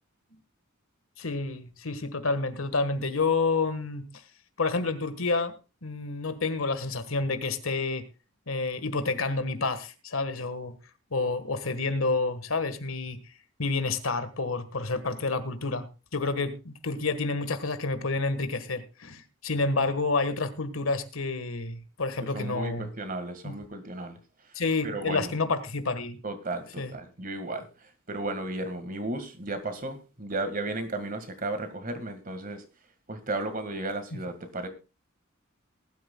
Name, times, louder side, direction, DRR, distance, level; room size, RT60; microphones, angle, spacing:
voice 1, 1.2-4.1 4.6-5.5 5.8-8.0 8.5-10.7 11.1-13.2 13.6-15.9 16.1-22.9 23.4-23.5 24.6-26.2 26.8-26.9, left 3 dB, 85° left, 10 dB, 1.6 m, -29 dB
voice 2, 22.3-24.2 24.8-25.3 26.2-32.6 33.1-34.7, right 2 dB, 40° right, 9 dB, 1.9 m, -34 dB
19.5 x 12.0 x 2.3 m, 0.30 s
head